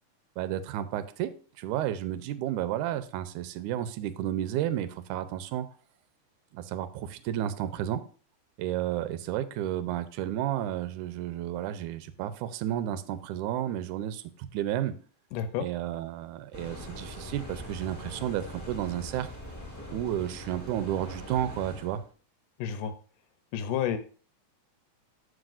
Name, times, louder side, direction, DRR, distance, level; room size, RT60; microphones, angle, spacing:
voice 1, 0.4-1.3 1.6-5.7 6.5-8.0 8.6-14.2 14.5-14.9 15.6-19.3 19.9-22.0, right 12 dB, 80° right, 12 dB, 2.0 m, -32 dB
voice 2, 15.3-15.7 22.6-22.9 23.5-24.0, left 9 dB, 80° left, 9 dB, 2.2 m, -30 dB
sound 1, 16.5-22.1, equal, 10° left, 1.1 m, -42 dB
12.5 x 4.8 x 2.5 m, 0.40 s
omnidirectional pair, 3.8 m